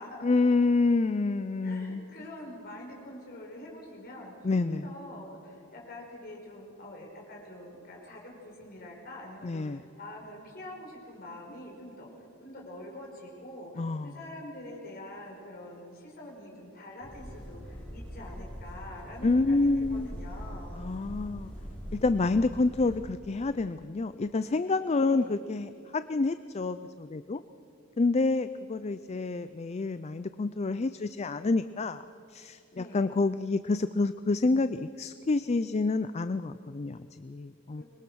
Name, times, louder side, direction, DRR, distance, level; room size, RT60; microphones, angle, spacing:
voice 1, 0.2-2.0 4.4-4.9 9.4-9.8 13.8-14.2 19.2-20.1 20.8-21.5 21.9-27.4 28.0-32.0 32.3-37.8, left 3 dB, 30° left, 12 dB, 0.4 m, -28 dB
voice 2, 1.6-20.8 25.1-25.4 32.7-33.1 37.8-37.9, left 1 dB, 45° left, -1 dB, 5.5 m, -45 dB
sound 1, 17.0-23.0, equal, 5° left, 8.0 m, -42 dB
25.0 x 21.5 x 6.3 m, 2.7 s
head